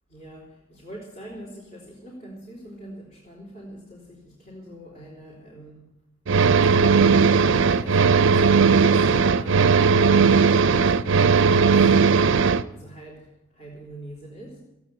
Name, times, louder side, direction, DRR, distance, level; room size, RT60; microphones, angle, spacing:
voice 1, 0.1-5.9 6.6-12.3 12.7-14.6, right 1 dB, 45° left, -7 dB, 3.9 m, -43 dB
sound 1, 6.3-12.6, right 5 dB, 55° right, 0.5 m, -17 dB
16.5 x 8.9 x 8.6 m, 0.94 s
head